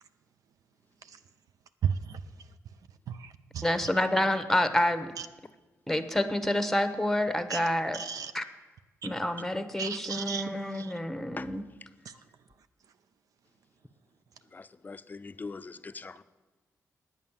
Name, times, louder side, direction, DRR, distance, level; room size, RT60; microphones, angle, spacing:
voice 1, 1.8-2.2 3.1-3.6 5.2-5.3 7.5-7.7 7.9-8.3 9.0-9.1 9.8-10.9 12.1-12.2, right 7 dB, 75° right, 10 dB, 0.5 m, -34 dB
voice 2, 3.6-5.1 5.9-8.0 8.3-8.4 9.0-11.6, left 1 dB, 5° left, 10 dB, 1.0 m, -28 dB
voice 3, 14.5-16.2, left 4 dB, 30° left, 12 dB, 0.5 m, -42 dB
9.4 x 8.8 x 7.2 m, 1.2 s
cardioid pair, 80°, 6 cm